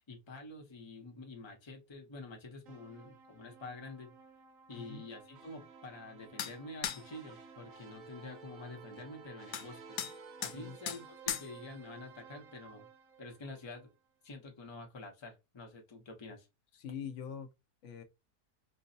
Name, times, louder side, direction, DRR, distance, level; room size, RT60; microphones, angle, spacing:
voice 1, 0.1-4.2 4.7-10.0 10.4-12.9 13.2-13.9 14.2-16.5, left 2 dB, 25° left, 0.6 m, -48 dB
sound 1, 2.7-13.9, right 5 dB, 65° right, 1.0 m, -55 dB
sound 2, 6.4-6.5 6.8-7.0 9.5-9.7 10.0-10.2 10.4-10.6 10.9-11.0 11.3-11.5, left 9 dB, 80° left, 1.1 m, -36 dB
voice 2, 16.7-17.5 17.8-18.0, left 7 dB, 60° left, 0.9 m, -43 dB
4.5 x 2.1 x 2.7 m
omnidirectional pair, 1.7 m